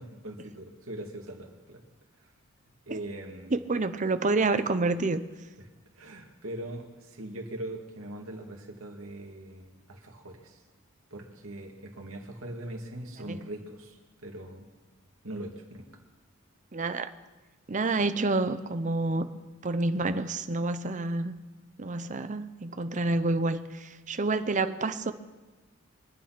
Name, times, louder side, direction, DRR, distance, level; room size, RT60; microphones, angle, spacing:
voice 1, 0.2-1.8 2.9-3.5 6.0-10.5 11.1-14.7 15.2-15.9, right 1 dB, 80° right, 1 dB, 2.5 m, -41 dB
voice 2, 3.5-5.2 13.2-13.5 16.7-17.1 17.7-19.3 19.6-21.3 21.8-25.1, right 3 dB, 35° right, 11 dB, 0.7 m, -28 dB
24.0 x 9.0 x 6.0 m, 1.2 s
head